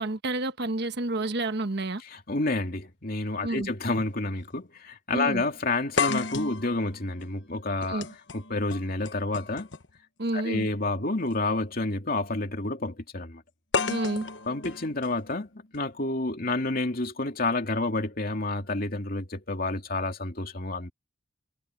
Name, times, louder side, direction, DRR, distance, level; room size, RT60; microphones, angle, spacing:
voice 1, 0.0-2.0 3.4-3.7 5.1-5.4 7.9-8.1 10.2-10.7 13.8-14.2, right 2 dB, 60° right, 1.3 m, -29 dB
voice 2, 2.0-8.1 8.3-9.7 10.3-13.4 14.5-20.9, left 2 dB, 50° left, 2.5 m, -29 dB
sound 1, 2.8-2.9 4.0-4.2 4.5-4.6 6.0-10.0 11.2-11.3 13.7-15.8, left 4 dB, 75° left, 1.1 m, -33 dB
head